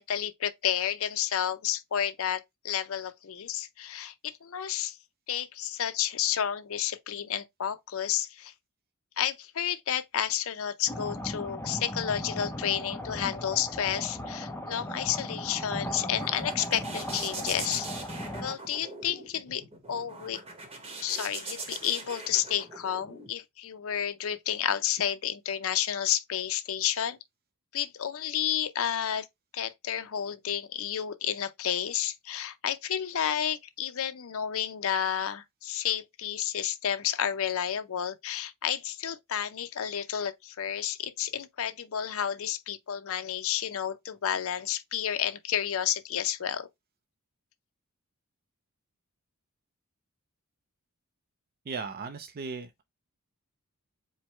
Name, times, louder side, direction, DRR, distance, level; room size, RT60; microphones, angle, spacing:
voice 1, 0.0-5.0 5.3-8.5 9.2-17.9 18.4-19.6 19.9-20.4 21.0-27.2 27.7-29.3 29.5-46.7, left 9 dB, 65° left, 0.5 m, -31 dB
sound 1, 10.9-18.6, equal, 10° left, 0.5 m, -37 dB
sound 2, 15.4-23.3, right 3 dB, 25° right, 0.9 m, -42 dB
voice 2, 51.7-52.8, right 4 dB, 45° right, 0.5 m, -37 dB
4.6 x 2.1 x 4.2 m
head